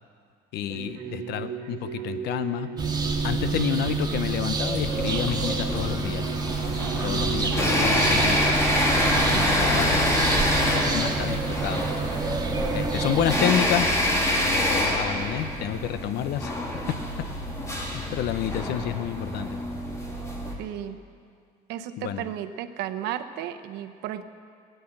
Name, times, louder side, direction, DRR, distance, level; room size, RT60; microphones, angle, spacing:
voice 1, 0.5-2.7 3.2-6.3 7.0-8.6 9.1-10.1 10.5-11.9 12.7-13.9 14.5-16.6 17.9-19.6 22.0-22.2, left 10 dB, 75° left, 12 dB, 0.8 m, -29 dB
sound 1, 0.7-8.6, right 7 dB, 70° right, 1.5 m, -38 dB
sound 2, 2.8-13.4, right 4 dB, 25° right, 1.9 m, -28 dB
sound 3, 4.8-20.5, left 1 dB, 15° left, 2.5 m, -26 dB
voice 2, 20.6-21.0 21.7-24.2, right 11 dB, 90° right, 10 dB, 0.8 m, -34 dB
17.0 x 9.4 x 7.7 m, 2.2 s
cardioid pair, 110°, 17 cm